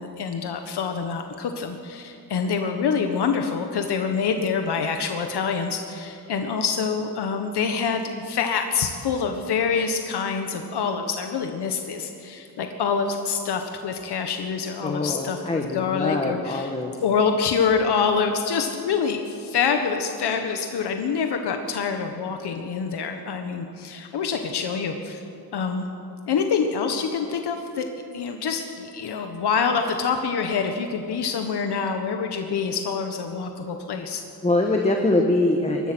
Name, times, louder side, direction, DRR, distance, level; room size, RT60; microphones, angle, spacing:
voice 1, 0.0-16.7 17.0-25.2 25.5-25.9 26.3-27.9 28.1-34.2, left 6 dB, 90° left, 5 dB, 1.5 m, -26 dB
voice 2, 14.8-16.9 34.4-35.9, left 2 dB, 15° left, 2 dB, 1.5 m, -23 dB
24.0 x 20.5 x 6.3 m, 2.6 s
wide cardioid pair, 150°, 39 cm